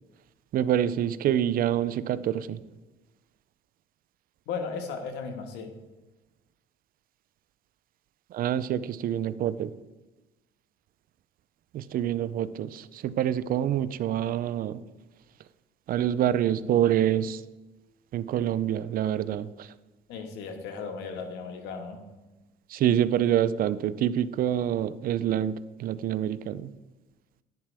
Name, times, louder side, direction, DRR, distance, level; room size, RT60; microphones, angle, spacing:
voice 1, 0.5-2.6 8.3-9.7 11.7-14.8 15.9-17.4 18.1-19.7 22.7-26.7, right 10 dB, 60° right, 15 dB, 0.5 m, -26 dB
voice 2, 4.5-5.7 20.1-22.1, left 5 dB, 90° left, 4 dB, 1.6 m, -36 dB
10.5 x 10.0 x 3.5 m, 1.1 s
cardioid pair, 110°, 17 cm